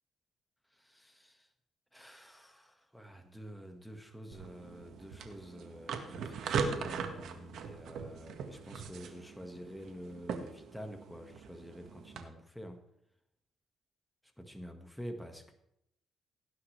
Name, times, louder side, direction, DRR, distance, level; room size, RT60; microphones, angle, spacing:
voice 1, 0.7-1.5 1.9-12.8 14.4-15.5, equal, ahead, 5 dB, 1.7 m, -48 dB
sound 1, 4.3-12.2, right 5 dB, 75° right, 1.6 m, -40 dB
17.5 x 9.7 x 3.3 m, 0.77 s
cardioid pair, 90°, 0 cm